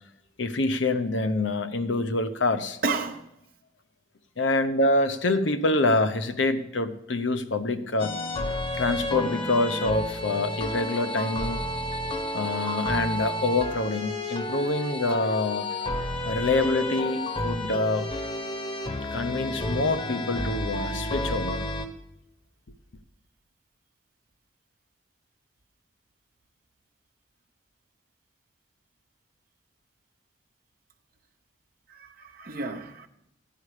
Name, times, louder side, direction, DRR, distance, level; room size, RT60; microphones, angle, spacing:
voice 1, 0.4-2.8 4.4-8.2 8.8-11.6 12.3-15.7 16.2-18.1 19.1-21.6, left 2 dB, 70° left, 0.9 m, -26 dB
voice 2, 2.8-3.3 14.6-14.7 16.0-16.1 31.9-33.1, right 4 dB, 50° right, 0.9 m, -32 dB
sound 1, 8.0-21.9, left 1 dB, 25° left, 1.1 m, -31 dB
15.0 x 10.5 x 4.9 m
head